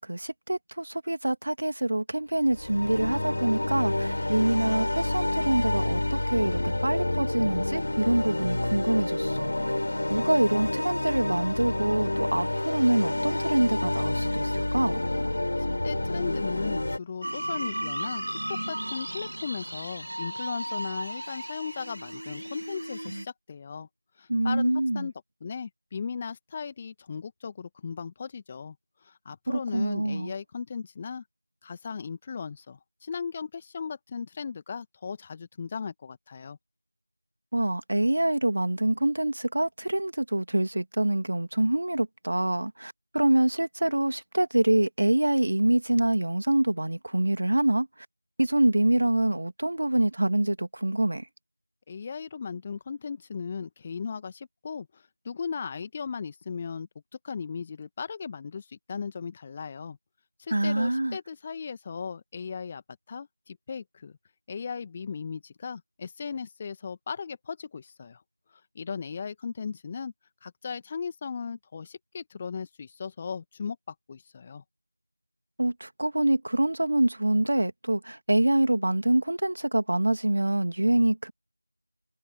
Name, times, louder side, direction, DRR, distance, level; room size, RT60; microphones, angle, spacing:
voice 1, 0.0-9.5 10.1-15.0 24.3-25.1 29.5-30.3 37.5-47.9 48.4-51.2 60.5-61.2 75.6-81.3, right 1 dB, 30° right, 2.4 m, -25 dB
sound 1, 2.4-17.0, left 1 dB, 30° left, 4.1 m, -28 dB
voice 2, 15.6-18.2 18.5-23.9 24.2-25.1 25.4-28.8 29.0-31.2 31.6-36.6 51.9-56.9 57.2-60.0 60.4-62.8 63.1-64.2 64.5-68.2 68.8-70.1 70.4-74.6, left 6 dB, 10° left, 2.0 m, -37 dB
sound 2, 17.2-23.3, right 1 dB, 50° right, 2.8 m, -35 dB
figure-of-eight pair, 175°, 0 cm